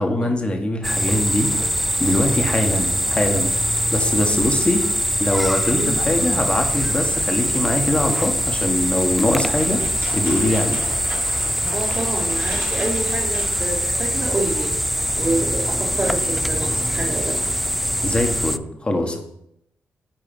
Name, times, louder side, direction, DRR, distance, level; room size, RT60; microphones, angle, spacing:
voice 1, 0.0-1.5 2.0-4.8 5.2-9.8 10.1-10.8 18.0-19.2, left 1 dB, 25° left, 3 dB, 1.7 m, -22 dB
sound 1, 0.8-18.6, equal, ahead, 0.4 m, -23 dB
sound 2, 9.6-13.8 14.2-14.3 14.5-15.4, right 2 dB, 85° right, 3.0 m, -38 dB
voice 2, 11.7-14.7 15.2-17.4, right 2 dB, 35° right, -8 dB, 2.5 m, -27 dB
7.4 x 4.7 x 5.6 m, 0.78 s
supercardioid pair, 50°, 4 cm